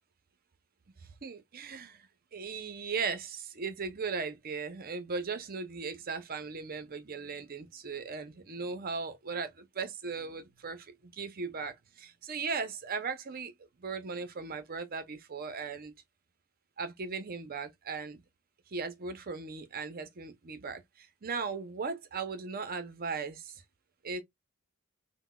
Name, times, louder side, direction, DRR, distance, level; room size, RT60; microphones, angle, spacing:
voice 1, 1.0-13.5 13.8-15.9 16.8-18.2 18.7-23.5 24.0-24.2, right 5 dB, 45° right, 0.6 m, -38 dB
3.9 x 2.1 x 2.2 m
head